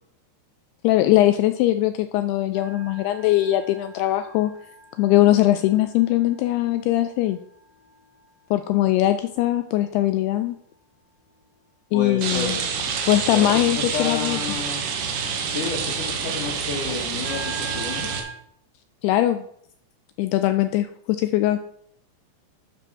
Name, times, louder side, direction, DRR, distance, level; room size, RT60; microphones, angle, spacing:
voice 1, 0.8-4.5 5.0-7.4 8.5-10.6 11.9-12.6 13.1-14.4 19.0-19.4 20.2-21.6, left 14 dB, 85° left, 9 dB, 2.3 m, -21 dB
sound 1, 2.5-10.8 11.3-11.6 17.2-18.3, right 5 dB, 35° right, 3.1 m, -43 dB
voice 2, 11.9-14.8 15.4-18.1, left 5 dB, 55° left, 1 dB, 2.6 m, -31 dB
Rain, 12.2-18.2, right 6 dB, 80° right, 3.5 m, -27 dB
12.0 x 5.3 x 6.1 m, 0.69 s
omnidirectional pair, 5.1 m